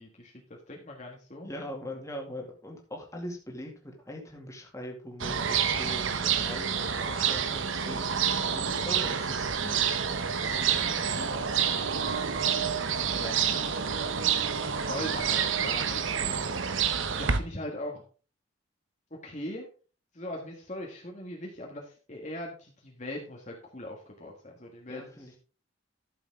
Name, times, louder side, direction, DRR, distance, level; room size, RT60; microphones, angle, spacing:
voice 1, 0.0-1.5 10.8-11.1 13.1-14.2 14.9-16.1 17.1-18.0 19.1-19.7 20.1-25.4, left 1 dB, 35° left, -1 dB, 1.6 m, -40 dB
voice 2, 1.4-9.8 10.4-12.1 17.3-17.5 24.9-25.4, equal, 15° left, 0 dB, 2.2 m, -42 dB
sound 1, 5.2-17.4, right 7 dB, 80° right, 0.9 m, -28 dB
12.5 x 6.9 x 3.6 m, 0.37 s
head